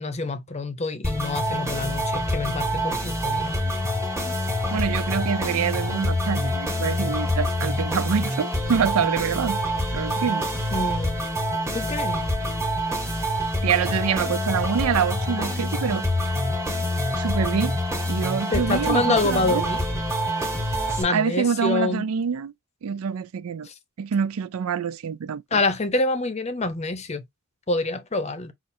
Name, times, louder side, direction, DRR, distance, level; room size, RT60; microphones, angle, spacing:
voice 1, 0.0-3.6 10.7-11.2 11.7-12.2 18.5-19.8 21.0-22.1 23.6-23.7 25.5-27.2 27.7-28.5, left 2 dB, 30° left, 0.7 m, -26 dB
sound 1, 1.0-21.0, equal, 15° right, 1.2 m, -26 dB
voice 2, 4.7-9.6 9.9-10.4 13.6-16.0 17.2-17.8 18.1-19.6 21.1-22.5 22.8-23.7 24.0-25.6, right 7 dB, 85° right, 0.4 m, -26 dB
5.5 x 2.5 x 2.6 m
head